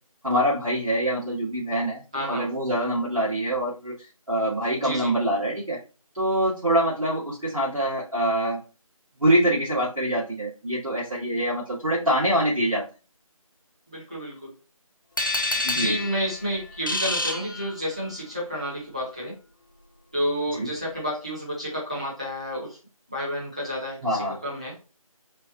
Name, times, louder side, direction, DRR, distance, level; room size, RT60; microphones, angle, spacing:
voice 1, 0.2-5.8 6.1-8.6 9.2-12.8 15.6-16.0 20.5-20.7 24.0-24.4, right 1 dB, 70° right, -9 dB, 2.1 m, -25 dB
voice 2, 2.1-2.5 4.7-5.1 13.9-14.5 15.7-19.3 20.1-22.8 23.1-24.7, equal, 10° right, -7 dB, 0.8 m, -30 dB
sound 1, 15.2-18.2, left 2 dB, 35° left, 0.6 m, -28 dB
4.4 x 2.3 x 4.0 m, 0.34 s
figure-of-eight pair, 170°, 18 cm